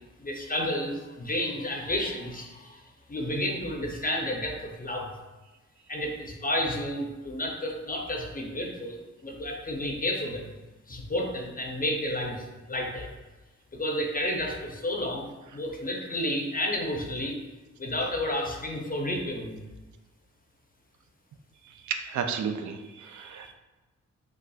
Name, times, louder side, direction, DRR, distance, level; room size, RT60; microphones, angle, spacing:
voice 1, 0.2-2.8 3.1-5.1 5.9-9.0 9.2-10.5 10.9-13.1 13.7-17.4 17.8-19.6, left 1 dB, 30° left, 0 dB, 0.6 m, -31 dB
voice 2, 21.8-23.5, right 6 dB, 65° right, 6 dB, 0.4 m, -32 dB
4.0 x 2.3 x 2.3 m, 1.2 s
cardioid pair, 55°, 31 cm